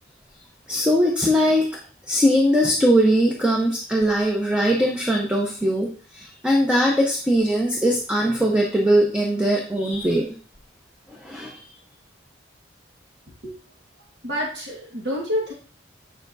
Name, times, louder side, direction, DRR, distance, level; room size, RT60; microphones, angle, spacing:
voice 1, 0.7-1.7 2.1-10.2 11.2-11.6, equal, 5° right, -1 dB, 0.8 m, -20 dB
voice 2, 14.2-15.5, equal, 60° right, -3 dB, 1.6 m, -28 dB
7.9 x 7.0 x 2.6 m, 0.42 s
head